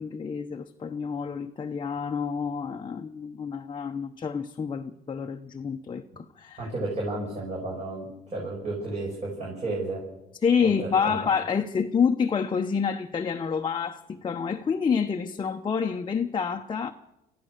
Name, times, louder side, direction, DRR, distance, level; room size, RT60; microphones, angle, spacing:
voice 1, 0.0-6.7 10.4-16.9, left 6 dB, 30° left, 4 dB, 0.9 m, -28 dB
voice 2, 6.6-8.1 8.3-10.0 10.6-11.2, right 2 dB, 40° right, -3 dB, 6.8 m, -32 dB
26.0 x 15.0 x 6.6 m, 0.90 s
cardioid pair, 110°, 17 cm